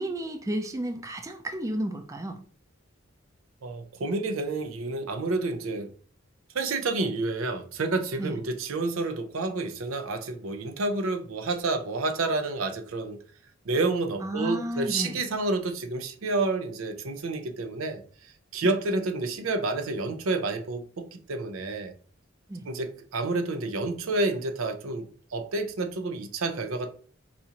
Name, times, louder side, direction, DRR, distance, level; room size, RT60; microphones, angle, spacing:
voice 1, 0.0-2.4 8.2-8.4 14.2-15.2 18.6-18.7 22.5-22.7, right 1 dB, 15° right, 0.3 m, -32 dB
voice 2, 3.6-5.9 6.5-13.2 13.7-21.9 22.7-26.9, right 3 dB, 90° right, 0.6 m, -29 dB
4.1 x 2.4 x 2.8 m
head